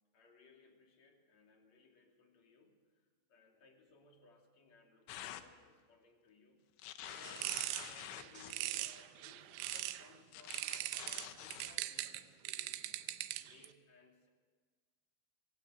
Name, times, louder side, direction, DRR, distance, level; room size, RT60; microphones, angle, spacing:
voice 1, 0.1-6.7 7.1-13.0 13.4-14.3, left 3 dB, 40° left, 2 dB, 3.3 m, -64 dB
sound 1, 5.1-5.5 6.8-8.6 9.7-9.8 10.3-11.8, left 12 dB, 75° left, 3.3 m, -48 dB
sound 2, 7.1-10.1 10.5-13.7, right 15 dB, 80° right, 3.0 m, -41 dB
25.5 x 23.0 x 7.9 m, 1.5 s
omnidirectional pair, 5.8 m